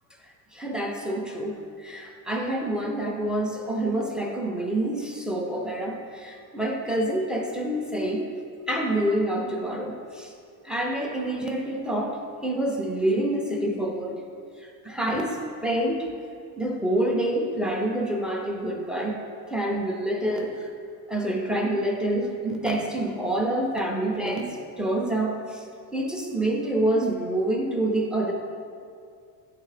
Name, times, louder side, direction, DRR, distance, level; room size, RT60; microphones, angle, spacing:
voice 1, 0.5-1.5 1.8-6.0 6.2-8.3 8.7-10.3 10.6-14.2 14.6-16.1 16.6-19.2 19.5-20.7 21.1-25.7 25.9-28.3, right 1 dB, ahead, 1 dB, 0.3 m, -27 dB
9.1 x 3.7 x 3.3 m, 2.4 s
cardioid pair, 125°, 43 cm